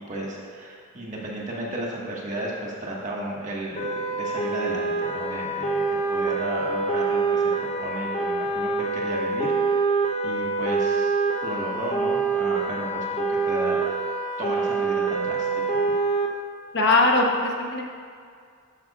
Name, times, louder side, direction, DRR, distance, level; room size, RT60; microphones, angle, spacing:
voice 1, 0.0-5.8 6.1-11.1 11.4-13.8 14.4-15.8, right 1 dB, 35° right, -4 dB, 1.6 m, -33 dB
sound 1, 3.8-16.3, right 3 dB, 30° left, 0.8 m, -25 dB
voice 2, 16.7-17.8, left 2 dB, 50° left, 1 dB, 1.0 m, -20 dB
12.5 x 9.0 x 2.4 m, 2.2 s
head